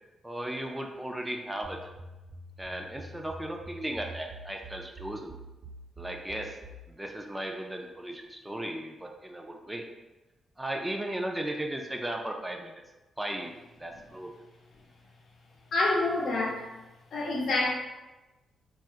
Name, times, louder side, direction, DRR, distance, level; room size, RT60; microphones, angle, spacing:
voice 1, 0.2-1.8 2.6-5.4 6.0-6.6 6.9-9.8 10.6-12.8 13.2-13.5 13.8-14.3, right 1 dB, 10° right, 2 dB, 0.3 m, -36 dB
sound 1, 1.6-6.9, right 1 dB, 40° right, 1.0 m, -46 dB
voice 2, 15.7-16.7 17.1-17.7, left 2 dB, 65° left, -3 dB, 0.7 m, -27 dB
2.7 x 2.3 x 2.4 m, 1.1 s
cardioid pair, 75°, 0 cm